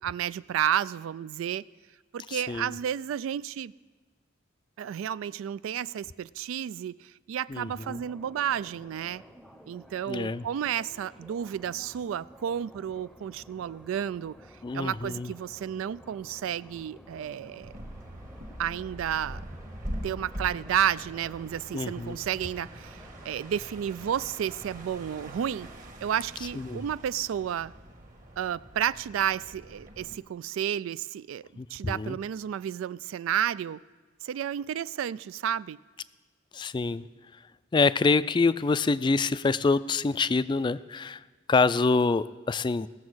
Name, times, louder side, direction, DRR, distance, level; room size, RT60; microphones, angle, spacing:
voice 1, 0.0-1.6 2.1-3.7 4.8-9.2 9.7-14.4 14.7-17.7 18.6-19.4 20.0-25.7 26.0-27.7 28.4-31.4 31.7-33.8 34.2-35.8, right 9 dB, 85° right, 0.3 m, -31 dB
voice 2, 2.3-2.7 7.5-8.0 10.1-10.5 14.6-15.3 21.7-22.2 26.6-26.8 31.6-32.2 36.5-37.1 37.7-41.2 41.5-42.9, left 4 dB, 25° left, 0.3 m, -26 dB
sound 1, 7.8-25.8, equal, ahead, 0.7 m, -52 dB
sound 2, 17.6-30.1, right 1 dB, 45° right, 1.5 m, -43 dB
17.5 x 7.3 x 6.2 m
head